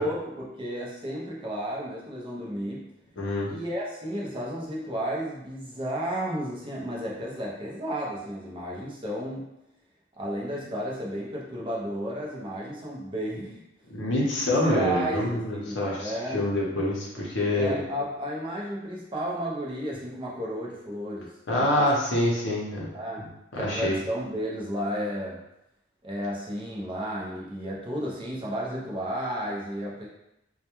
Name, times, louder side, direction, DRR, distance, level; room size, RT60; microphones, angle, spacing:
voice 1, 0.0-2.9 3.5-9.5 10.2-13.6 14.6-16.4 17.6-21.3 21.6-21.9 22.9-25.4 26.0-30.1, equal, 25° right, -4 dB, 0.5 m, -33 dB
voice 2, 3.2-3.5 13.9-17.7 21.5-22.9 23.5-24.0, left 1 dB, 65° left, -4 dB, 0.7 m, -26 dB
2.2 x 2.1 x 2.9 m, 0.87 s
head